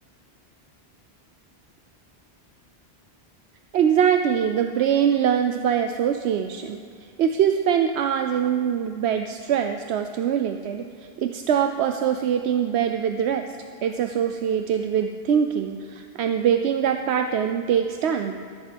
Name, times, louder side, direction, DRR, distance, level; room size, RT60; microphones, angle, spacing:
voice 1, 3.7-6.8 7.2-10.9 11.2-13.5 13.8-18.3, right 8 dB, 80° right, 6 dB, 0.9 m, -23 dB
14.0 x 7.3 x 7.7 m, 2.3 s
omnidirectional pair, 1.1 m